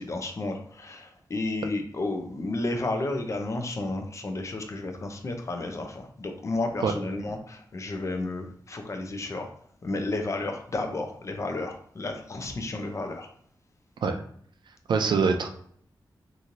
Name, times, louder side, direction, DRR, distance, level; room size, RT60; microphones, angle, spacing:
voice 1, 0.0-9.5 9.8-13.3, left 2 dB, 40° left, 4 dB, 0.5 m, -32 dB
voice 2, 14.9-15.5, right 5 dB, 75° right, 5 dB, 0.4 m, -24 dB
3.0 x 2.6 x 2.5 m, 0.62 s
wide cardioid pair, 135°, 8 cm